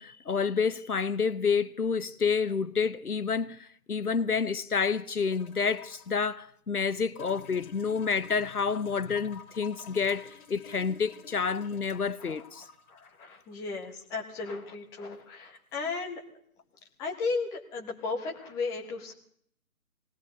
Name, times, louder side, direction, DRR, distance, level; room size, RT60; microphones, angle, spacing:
voice 1, 0.0-12.7, left 5 dB, 85° left, 1.0 m, -29 dB
sound 1, 5.3-6.2 7.2-14.2 15.6-15.7, left 7 dB, 35° left, 2.4 m, -51 dB
voice 2, 12.2-16.2 17.0-19.1, left 4 dB, 10° left, 1.1 m, -35 dB
19.5 x 18.0 x 3.9 m
figure-of-eight pair, 145°, 44 cm